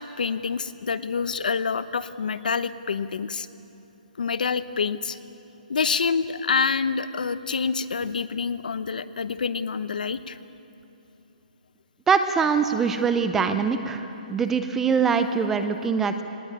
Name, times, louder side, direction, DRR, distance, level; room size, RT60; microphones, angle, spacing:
voice 1, 0.0-3.5 4.2-5.2 5.7-10.4, left 5 dB, 65° left, 13 dB, 1.0 m, -27 dB
voice 2, 12.1-16.2, right 6 dB, 5° right, 9 dB, 0.5 m, -23 dB
20.5 x 19.5 x 8.7 m, 3.0 s
hypercardioid pair, 175°, 5 cm